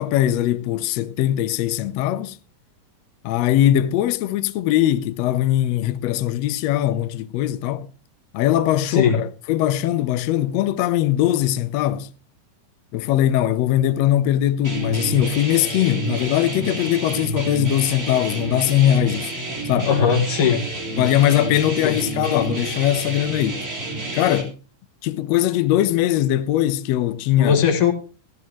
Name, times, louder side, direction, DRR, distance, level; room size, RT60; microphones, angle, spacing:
voice 1, 0.0-2.4 3.2-7.9 8.3-12.1 12.9-19.3 19.6-19.9 20.9-23.6 24.1-24.6 25.0-27.6, left 12 dB, 85° left, 1.5 m, -20 dB
voice 2, 8.9-9.2 19.8-20.6 21.8-22.0 27.4-27.9, left 7 dB, 65° left, 3.3 m, -18 dB
sound 1, 14.6-24.4, right 2 dB, 25° right, 2.6 m, -29 dB
16.0 x 12.0 x 3.1 m
omnidirectional pair, 3.8 m